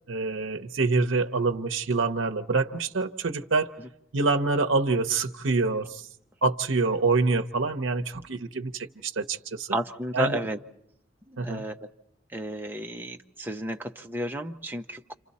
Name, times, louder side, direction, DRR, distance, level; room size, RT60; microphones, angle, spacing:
voice 1, 0.1-3.8 4.1-6.1 6.4-9.7 10.1-10.4 11.4-11.6, right 3 dB, 90° right, 6 dB, 0.8 m, -26 dB
voice 2, 9.7-10.6 11.3-11.8 12.3-15.2, right 1 dB, 10° right, 3 dB, 0.8 m, -32 dB
29.5 x 27.5 x 4.2 m, 0.78 s
head